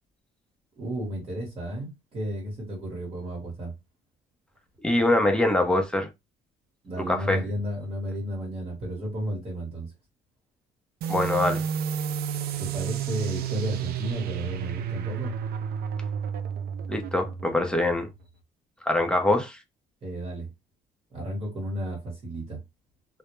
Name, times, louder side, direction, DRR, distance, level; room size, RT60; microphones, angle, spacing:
voice 1, 0.8-3.7 6.8-9.9 12.6-15.3 20.0-20.5 21.1-22.6, equal, 35° right, 1.1 m, -33 dB
voice 2, 4.8-6.1 7.1-7.4 11.1-11.6 16.9-18.1 18.8-19.6, left 1 dB, 5° left, 0.7 m, -23 dB
sound 1, 11.0-18.3, right 8 dB, 65° right, 0.4 m, -31 dB
2.2 x 2.1 x 3.0 m
cardioid pair, 110°, 17 cm